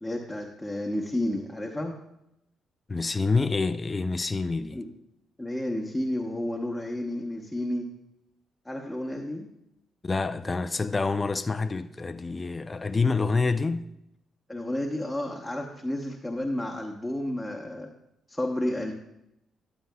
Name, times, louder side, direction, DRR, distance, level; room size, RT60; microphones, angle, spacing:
voice 1, 0.0-2.0 4.7-4.9 5.4-7.8 8.6-9.5 14.5-17.9 18.3-18.9, left 1 dB, 5° left, 1.0 m, -31 dB
voice 2, 2.9-4.8 10.0-13.9, left 4 dB, 30° left, 0.4 m, -27 dB
12.5 x 8.0 x 2.3 m
hypercardioid pair, 50°, 0 cm